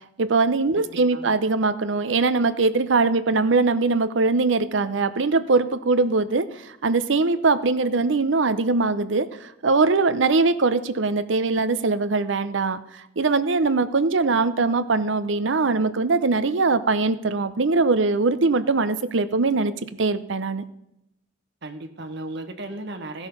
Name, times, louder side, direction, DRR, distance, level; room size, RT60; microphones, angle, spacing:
voice 1, 0.2-12.8 13.2-19.7 20.0-20.6, right 3 dB, 85° right, 13 dB, 0.7 m, -21 dB
voice 2, 0.7-1.3 21.6-23.3, right 2 dB, 65° right, 6 dB, 1.3 m, -35 dB
15.0 x 6.2 x 5.5 m, 0.83 s
head